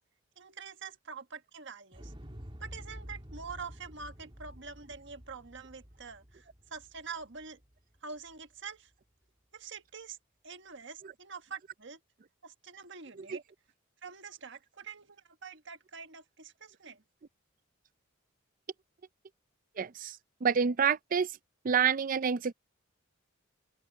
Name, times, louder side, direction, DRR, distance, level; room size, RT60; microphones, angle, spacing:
voice 1, 0.4-2.1 2.6-7.6 8.0-8.9 9.5-10.2 10.4-12.0 12.4-13.4 14.0-17.0, right 5 dB, 60° right, 1.4 m, -45 dB
Explosion, 1.9-8.0 8.3-8.4, equal, 25° right, 2.3 m, -49 dB
voice 2, 19.8-21.3 21.6-22.5, right 7 dB, 40° right, 0.5 m, -28 dB
open air
head